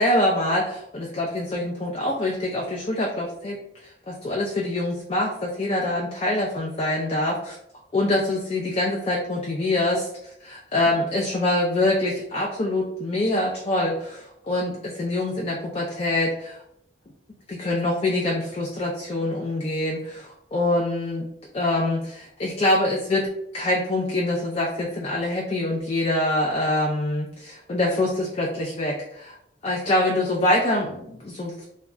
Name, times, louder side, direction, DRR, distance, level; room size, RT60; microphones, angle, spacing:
voice 1, 0.0-3.6 3.8-7.5 7.9-10.1 10.4-16.6 17.5-21.2 21.5-23.3 23.5-29.4 29.6-31.6, left 1 dB, 35° left, -1 dB, 0.3 m, -25 dB
2.2 x 2.1 x 3.6 m, 0.76 s
head